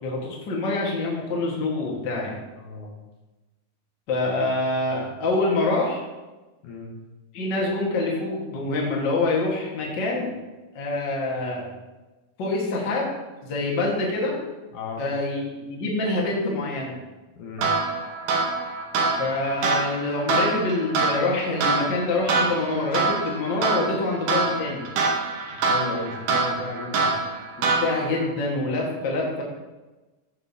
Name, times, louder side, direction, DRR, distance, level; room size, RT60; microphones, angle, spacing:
voice 1, 0.0-2.3 4.1-6.0 7.3-10.3 10.7-11.6 12.4-13.1 13.5-14.4 15.0-17.0 19.2-24.9 27.6-29.4, left 2 dB, 45° left, -3 dB, 1.8 m, -26 dB
voice 2, 2.6-2.9 6.6-6.9 14.7-15.0 17.4-17.7 25.6-27.2, left 3 dB, 75° left, -1 dB, 2.7 m, -34 dB
sound 1, 17.6-28.2, right 4 dB, 75° right, 2.6 m, -25 dB
15.5 x 5.4 x 2.8 m, 1.2 s
omnidirectional pair, 3.7 m